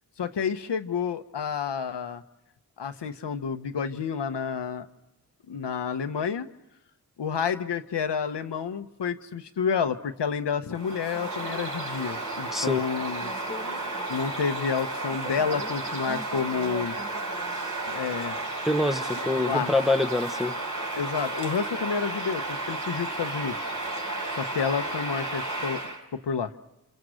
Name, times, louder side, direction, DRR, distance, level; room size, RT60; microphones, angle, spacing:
voice 1, 0.2-2.2 2.8-4.9 5.5-6.5 7.2-13.3 14.1-17.0 17.9-18.4 19.4-19.7 21.0-23.6 24.3-25.8 26.2-26.5, left 6 dB, 85° left, 8 dB, 1.0 m, -29 dB
Bird vocalization bird call bird song, 10.7-26.0, right 2 dB, 50° right, 4.1 m, -33 dB
voice 2, 12.5-12.8 18.6-20.6, left 2 dB, ahead, 8 dB, 0.9 m, -25 dB
28.5 x 27.0 x 6.4 m, 0.99 s
cardioid pair, 55°, 41 cm